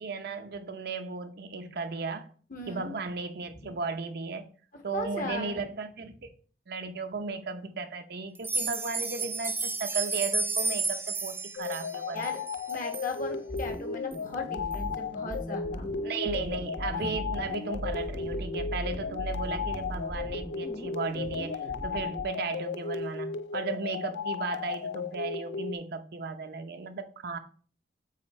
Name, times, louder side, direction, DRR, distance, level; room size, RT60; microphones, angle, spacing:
voice 1, 0.0-2.3 2.7-4.5 4.8-6.3 6.7-12.3 16.0-27.4, right 4 dB, 60° right, 0.7 m, -35 dB
voice 2, 2.5-2.9 4.7-5.6 12.1-15.9 17.0-17.1, left 3 dB, 50° left, 1.5 m, -38 dB
sound 1, 8.3-13.1 13.6-13.7 14.1-14.2 14.7-14.8, right 4 dB, 10° right, 0.5 m, -32 dB
sound 2, 11.6-25.7, left 5 dB, 75° left, 0.4 m, -35 dB
sound 3, 13.5-22.2, equal, 20° left, 0.8 m, -38 dB
7.4 x 4.2 x 4.2 m
head